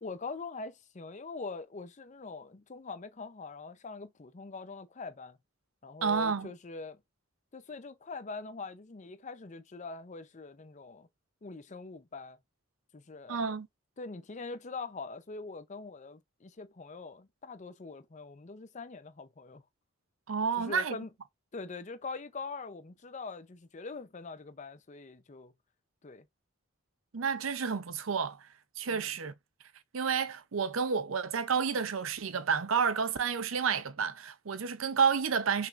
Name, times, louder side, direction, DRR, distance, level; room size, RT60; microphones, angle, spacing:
voice 1, 0.0-5.4 5.8-7.0 7.5-11.1 11.4-12.4 12.9-13.5 14.0-19.6 20.6-21.1 21.5-25.5 26.0-26.3 28.9-29.1, left 4 dB, 35° left, 0.6 m, -43 dB
voice 2, 6.0-6.5 13.3-13.7 20.3-21.0 27.1-28.4 28.8-29.3 29.9-35.7, right 6 dB, 75° right, 0.6 m, -30 dB
5.7 x 3.3 x 2.5 m
head